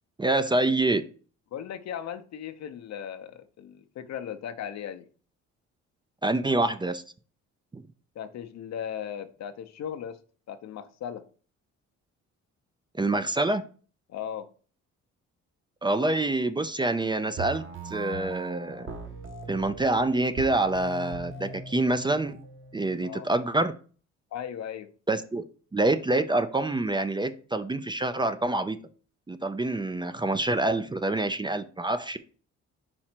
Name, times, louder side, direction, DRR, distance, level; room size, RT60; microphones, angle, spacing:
voice 1, 0.2-1.0 6.2-7.0 7.7-7.8 12.9-13.6 15.8-18.9 19.5-22.3 22.7-23.7 25.1-25.4 25.7-28.8 29.3-32.2, right 2 dB, 15° right, 0.4 m, -26 dB
voice 2, 1.5-5.1 8.1-10.2 10.5-11.3 14.1-14.5 23.0-23.3 24.3-24.9, left 9 dB, 60° left, 0.7 m, -37 dB
sound 1, 17.4-23.4, right 3 dB, 40° right, 1.3 m, -40 dB
4.8 x 4.4 x 4.4 m
cardioid pair, 90°, 30 cm